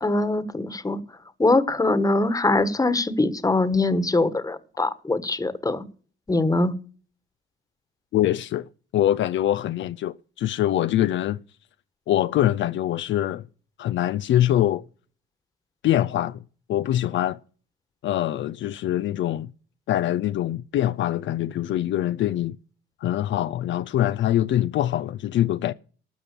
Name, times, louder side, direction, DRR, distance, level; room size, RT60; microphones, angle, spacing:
voice 1, 0.0-1.0 1.4-5.8 6.3-6.7, left 2 dB, 15° left, 1.4 m, -22 dB
voice 2, 8.1-8.7 8.9-11.4 12.1-13.4 13.8-14.8 15.8-16.4 16.7-17.4 18.0-19.5 19.9-22.6 23.0-25.7, left 12 dB, 70° left, 0.5 m, -23 dB
12.5 x 5.9 x 8.3 m
cardioid pair, 90°, 20 cm